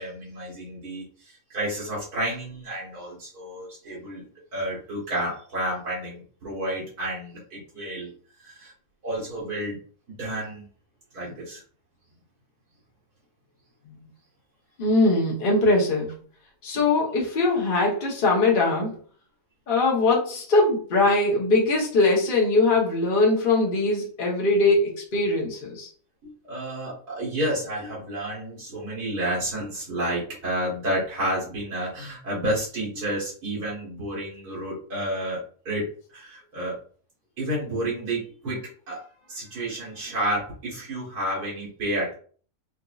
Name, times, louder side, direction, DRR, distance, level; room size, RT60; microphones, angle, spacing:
voice 1, 0.0-4.2 4.5-8.1 8.4-8.7 9.0-9.8 10.2-10.7 11.1-11.6 26.2-35.4 35.7-35.8 36.1-36.8 37.4-42.1, right 1 dB, 80° right, -6 dB, 1.9 m, -30 dB
voice 2, 14.8-16.1 16.6-19.0 19.7-25.9, left 2 dB, 40° left, -2 dB, 0.9 m, -21 dB
3.9 x 2.6 x 2.4 m, 0.44 s
omnidirectional pair, 1.6 m